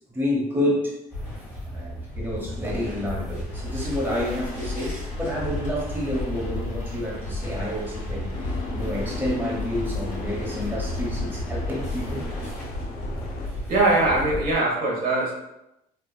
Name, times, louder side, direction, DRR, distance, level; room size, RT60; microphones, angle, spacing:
voice 1, 0.1-1.0 1.7-12.3, left 1 dB, 10° right, -4 dB, 1.0 m, -29 dB
sound 1, 1.1-14.5, left 1 dB, 15° left, 1.4 m, -33 dB
sound 2, 3.5-12.6, left 3 dB, 50° left, 1.2 m, -40 dB
Boat Water vehicle, 8.3-13.5, left 4 dB, 65° left, 0.5 m, -38 dB
voice 2, 13.7-15.3, right 2 dB, 60° right, -3 dB, 0.9 m, -21 dB
3.5 x 2.3 x 2.3 m, 0.88 s
cardioid pair, 80°, 17 cm